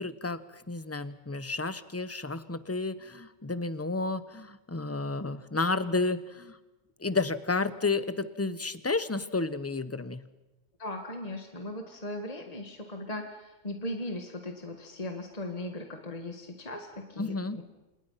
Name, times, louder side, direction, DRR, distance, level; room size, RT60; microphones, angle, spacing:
voice 1, 0.0-6.6 7.0-10.2 17.2-17.6, left 3 dB, 15° left, 13 dB, 0.9 m, -31 dB
voice 2, 10.8-17.6, left 1 dB, 30° left, 3 dB, 2.0 m, -38 dB
29.0 x 28.0 x 5.8 m, 1.1 s
omnidirectional pair, 1.3 m